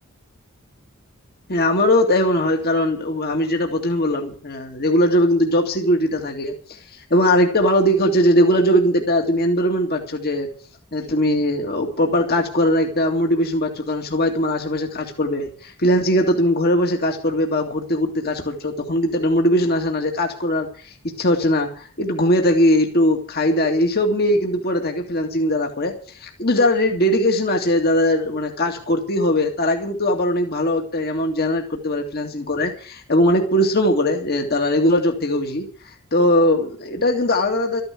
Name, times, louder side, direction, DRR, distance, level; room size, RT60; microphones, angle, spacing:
voice 1, 1.5-6.8 7.1-10.5 10.9-20.7 21.0-25.9 26.2-35.7 36.1-37.8, left 1 dB, 45° left, 3 dB, 2.2 m, -20 dB
13.5 x 10.5 x 7.7 m, 0.44 s
head